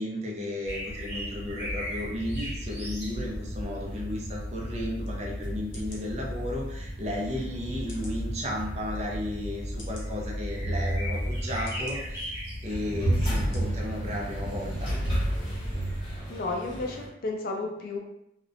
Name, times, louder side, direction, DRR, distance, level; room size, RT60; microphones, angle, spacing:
voice 1, 0.0-14.9, left 1 dB, 35° right, -2 dB, 0.5 m, -34 dB
sound 1, 0.6-16.2, equal, 15° right, 0.9 m, -39 dB
sound 2, 1.7-17.1, right 1 dB, 25° left, 0.8 m, -33 dB
sound 3, 5.0-5.2 5.7-6.0 6.8-6.9 7.9-8.2 8.9-9.0 9.8-10.1 10.9-11.0 11.7-12.0 12.7-12.8 13.4-13.6 14.0-14.1, left 2 dB, 90° left, 0.7 m, -48 dB
voice 2, 16.3-18.0, left 2 dB, 50° left, 2 dB, 0.4 m, -32 dB
2.8 x 2.0 x 2.5 m, 0.80 s
head